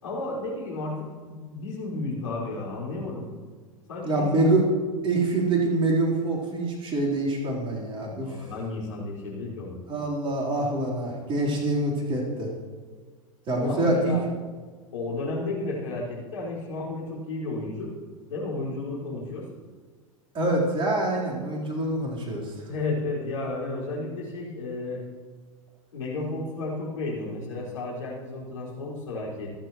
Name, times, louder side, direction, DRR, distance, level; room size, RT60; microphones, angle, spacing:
voice 1, 0.0-3.3 3.9-4.4 8.2-9.8 13.6-14.2 14.9-17.9 18.3-19.4 22.7-25.0 25.9-29.5, left 2 dB, 65° left, -5 dB, 5.2 m, -32 dB
voice 2, 4.0-4.7 5.0-8.4 9.9-12.5 13.5-14.1 20.3-22.6, right 2 dB, 30° right, -3 dB, 3.9 m, -25 dB
26.5 x 10.0 x 3.1 m, 1.5 s
figure-of-eight pair, 90°, 18 cm